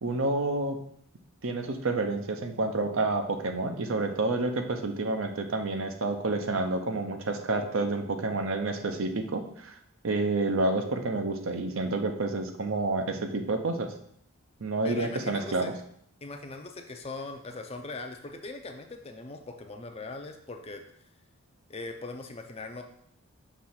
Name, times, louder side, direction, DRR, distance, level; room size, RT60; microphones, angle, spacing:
voice 1, 0.0-0.8 1.4-9.8 10.0-13.9 14.6-15.7, right 2 dB, 60° right, 6 dB, 0.6 m, -29 dB
voice 2, 14.8-15.7 16.2-20.8 21.7-22.8, left 3 dB, 25° left, 5 dB, 0.5 m, -40 dB
6.1 x 3.2 x 5.7 m, 0.69 s
head